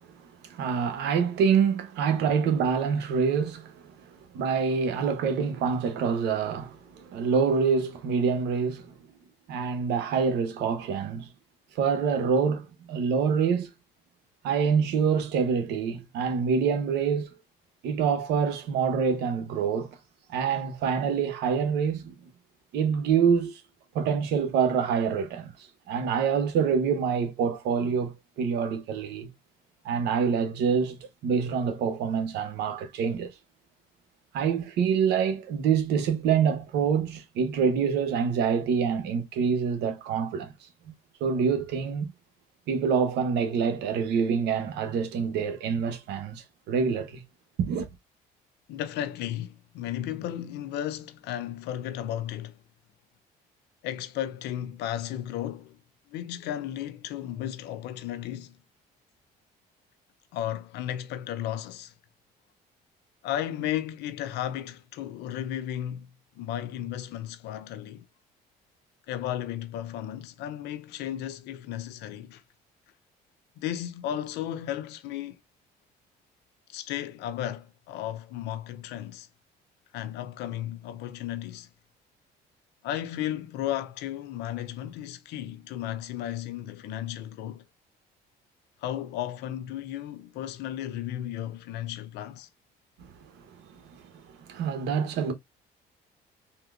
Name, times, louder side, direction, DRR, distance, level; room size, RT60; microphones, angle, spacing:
voice 1, 0.4-3.8 4.3-8.9 9.5-11.3 11.7-13.7 14.4-17.3 17.8-19.9 20.3-22.2 22.7-23.6 23.9-25.5 25.9-29.3 29.8-33.3 34.3-40.5 40.9-41.0 41.2-42.1 42.7-47.2 47.6-47.9 93.0-93.1 94.1-95.3, right 6 dB, 80° right, 0.9 m, -26 dB
voice 2, 48.7-52.6 53.8-55.8 56.1-58.6 60.3-61.9 63.2-66.1 66.4-68.0 69.1-72.4 73.6-75.4 76.7-79.3 79.9-81.7 82.8-87.6 88.8-92.5, left 11 dB, 85° left, 0.6 m, -34 dB
3.6 x 2.8 x 2.3 m
cardioid pair, 110°, 17 cm